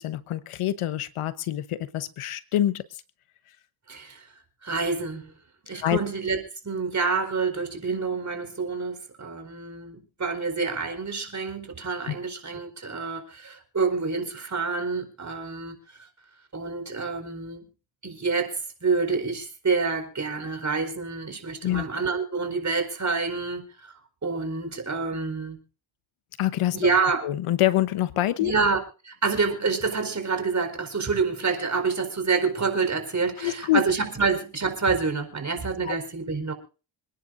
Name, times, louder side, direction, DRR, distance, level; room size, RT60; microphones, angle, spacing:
voice 1, 0.0-2.8 5.8-6.0 12.1-12.2 21.6-21.8 26.4-26.9 27.2-28.5 33.4-33.8 35.8-36.0, left 13 dB, 80° left, 1.1 m, -25 dB
voice 2, 3.9-4.3 4.6-5.3 5.6-6.4 6.6-16.1 16.5-17.7 18.0-23.9 24.2-25.6 26.7-27.2 28.4-36.5, right 4 dB, 35° right, 4.6 m, -27 dB
27.5 x 10.5 x 2.6 m
cardioid pair, 80°, 49 cm